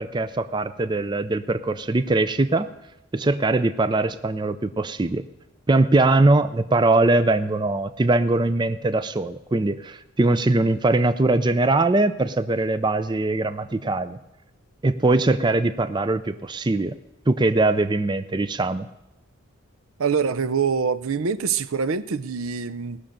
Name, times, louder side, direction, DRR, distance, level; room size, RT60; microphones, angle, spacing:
voice 1, 0.0-2.7 3.1-5.2 5.7-14.2 14.8-16.9 17.3-18.9, right 2 dB, 20° right, 11 dB, 0.4 m, -21 dB
voice 2, 20.0-23.0, right 6 dB, 70° right, 15 dB, 0.5 m, -24 dB
18.5 x 6.6 x 8.7 m, 0.95 s
head